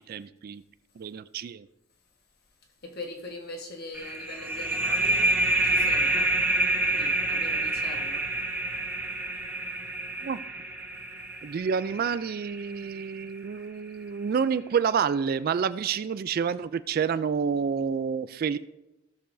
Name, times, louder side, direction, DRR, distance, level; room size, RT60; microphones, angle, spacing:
voice 1, 0.1-0.6 1.0-1.7 10.2-10.4 11.4-18.6, right 6 dB, 45° right, 0.3 m, -28 dB
voice 2, 2.8-5.3 5.6-6.4 6.9-8.3, left 2 dB, 50° left, 1.5 m, -41 dB
sound 1, 3.9-13.2, right 2 dB, 10° right, 1.4 m, -28 dB
16.5 x 6.7 x 2.7 m
head